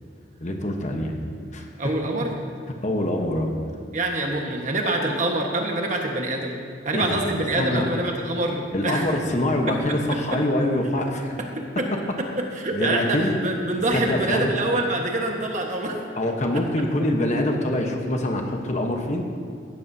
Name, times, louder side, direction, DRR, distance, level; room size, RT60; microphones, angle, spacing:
voice 1, 0.4-1.2 1.5-2.0 2.8-3.5 6.9-7.2 7.5-7.8 8.7-11.4 12.7-13.4 13.9-14.5 16.2-19.3, left 1 dB, 40° left, 3 dB, 1.1 m, -25 dB
voice 2, 1.8-2.3 3.9-6.6 6.8-8.6 8.8-9.1 11.8-11.9 12.5-13.2 13.4-16.0, right 2 dB, 40° right, 1 dB, 1.4 m, -25 dB
16.5 x 13.0 x 2.8 m, 2.2 s
head